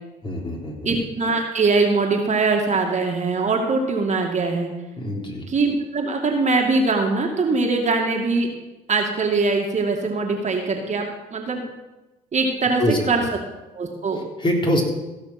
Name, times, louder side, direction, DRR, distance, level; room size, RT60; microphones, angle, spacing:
voice 1, 0.2-0.9 5.0-5.4 12.8-13.0 14.4-14.8, equal, 25° left, -1 dB, 3.7 m, -23 dB
voice 2, 0.8-4.7 5.5-8.5 8.9-11.6 12.3-12.8 13.1-13.2 13.7-14.2, right 3 dB, 40° right, 2 dB, 2.3 m, -22 dB
16.0 x 5.8 x 6.0 m, 1.1 s
hypercardioid pair, 60°, 18 cm